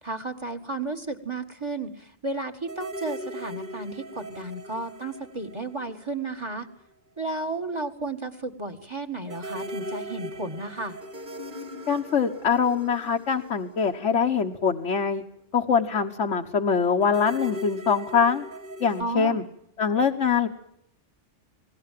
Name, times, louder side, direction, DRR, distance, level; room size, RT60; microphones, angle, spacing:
voice 1, 0.0-6.7 7.2-11.0 19.0-19.4, right 2 dB, 25° right, 10 dB, 1.9 m, -33 dB
sound 1, 2.7-6.4 6.7-6.8 9.3-14.7 17.0-19.0, equal, 45° right, 2.2 m, -39 dB
voice 2, 11.9-15.2 15.5-18.5 18.8-19.4 19.8-20.5, left 6 dB, 80° left, 2 dB, 1.6 m, -23 dB
28.0 x 20.0 x 7.6 m, 0.73 s
omnidirectional pair, 1.2 m